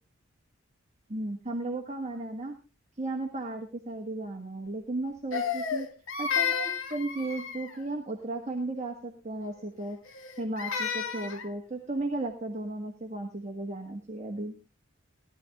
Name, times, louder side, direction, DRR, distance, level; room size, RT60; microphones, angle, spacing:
voice 1, 1.1-2.6 3.0-5.9 6.2-10.0 10.4-14.5, right 2 dB, 35° right, 2 dB, 1.5 m, -35 dB
Crying sobbing, 5.3-7.8 10.1-11.5, left 7 dB, 80° left, 1.6 m, -32 dB
17.0 x 11.5 x 3.5 m, 0.29 s
head